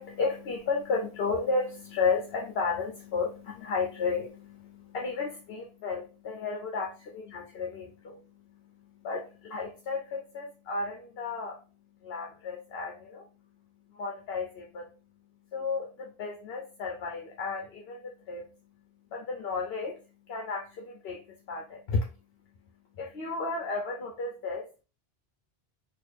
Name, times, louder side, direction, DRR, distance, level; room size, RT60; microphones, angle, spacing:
voice 1, 0.0-24.7, left 4 dB, 75° left, 1 dB, 0.9 m, -34 dB
3.8 x 2.5 x 3.2 m, 0.33 s
omnidirectional pair, 1.0 m